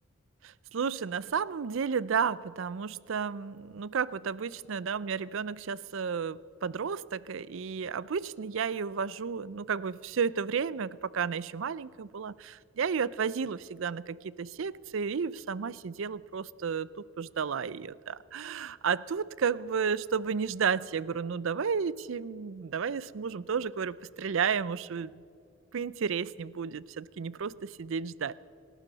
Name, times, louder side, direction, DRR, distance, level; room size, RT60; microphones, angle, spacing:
voice 1, 0.4-16.9 17.2-25.1 25.7-28.3, right 6 dB, 65° right, 19 dB, 0.4 m, -32 dB
26.0 x 12.0 x 4.1 m, 2.5 s
head